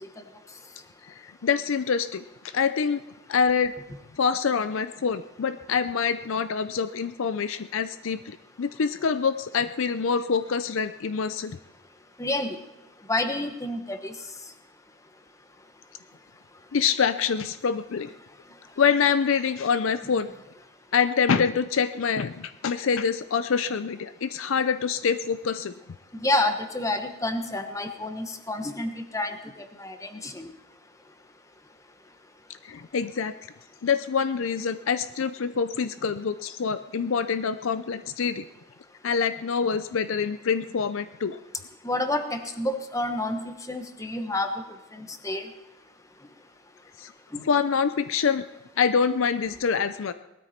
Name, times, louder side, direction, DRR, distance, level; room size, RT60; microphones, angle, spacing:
voice 1, 1.1-2.2 2.5-3.0 3.3-3.7 4.2-11.6 16.7-18.1 18.8-20.3 20.9-25.7 32.6-33.3 33.8-38.4 39.0-41.4 47.0-47.1 47.4-48.4 48.8-50.1, left 6 dB, 60° left, 12 dB, 0.5 m, -25 dB
voice 2, 12.2-12.6 13.1-14.1 26.2-29.4 29.8-30.5 41.8-44.5 44.9-45.5 47.3-47.4, left 1 dB, 15° left, 7 dB, 1.1 m, -29 dB
19.0 x 13.0 x 4.4 m, 0.97 s
head